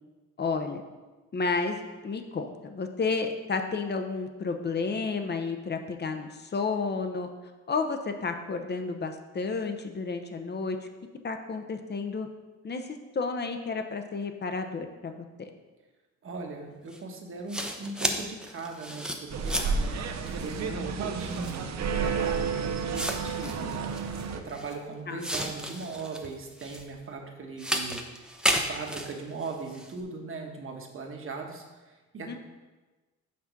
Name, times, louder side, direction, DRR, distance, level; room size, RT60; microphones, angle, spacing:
voice 1, 0.4-0.8 1.3-7.3 7.7-10.8 11.2-12.3 12.6-15.5 23.4-23.8 25.1-25.2 32.3-32.4, left 4 dB, 35° left, 6 dB, 0.8 m, -31 dB
voice 2, 16.2-23.8 24.3-32.4, right 3 dB, 45° right, 2 dB, 1.3 m, -39 dB
sound 1, 16.9-17.0 17.5-19.9 20.3-20.6 21.2-21.6 22.3-22.4 22.9-24.8 25.2-26.9 27.6-29.9, equal, 5° right, 0.7 m, -33 dB
sound 2, 19.3-24.4, right 5 dB, 65° right, 0.7 m, -31 dB
6.0 x 4.3 x 6.0 m, 1.2 s
cardioid pair, 90°, 30 cm